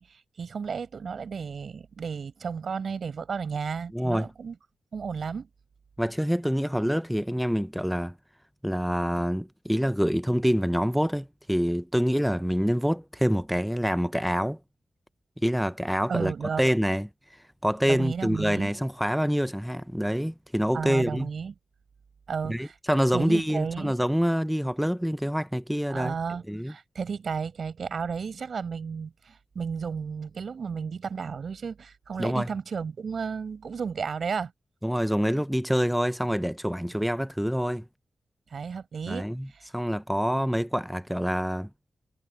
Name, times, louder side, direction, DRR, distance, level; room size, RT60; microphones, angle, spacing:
voice 1, 0.0-4.5 4.9-5.5 16.1-16.6 17.9-18.7 20.7-21.5 22.3-22.7 23.1-23.9 25.9-34.5 38.5-39.3 39.5-39.7, right 6 dB, 60° right, 4.6 m, -33 dB
voice 2, 3.9-4.3 6.0-8.1 8.6-14.6 15.4-16.3 16.6-17.1 17.6-21.3 22.5-26.1 26.5-26.7 32.2-32.5 34.8-37.8 39.1-39.5 39.7-41.7, equal, ahead, 0.4 m, -26 dB
wide cardioid pair, 100°, 0 cm